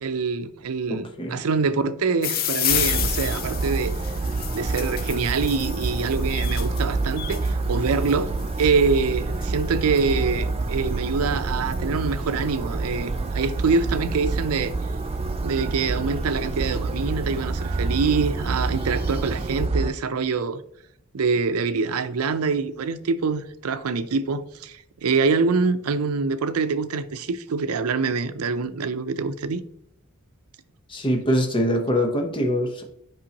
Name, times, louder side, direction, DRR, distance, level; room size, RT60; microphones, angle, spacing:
voice 1, 0.0-3.9 4.5-8.3 8.6-14.7 15.4-20.6 21.1-29.6, right 4 dB, 85° right, 0.5 m, -25 dB
voice 2, 0.9-1.4 30.9-32.8, equal, 25° left, 0.9 m, -23 dB
sound 1, 2.2-15.4 16.3-16.7 17.3-17.4 17.6-17.7 18.0-19.3, left 10 dB, 45° left, 0.5 m, -33 dB
sound 2, 2.7-19.9, right 3 dB, 25° right, 0.3 m, -27 dB
8.6 x 5.5 x 2.9 m
head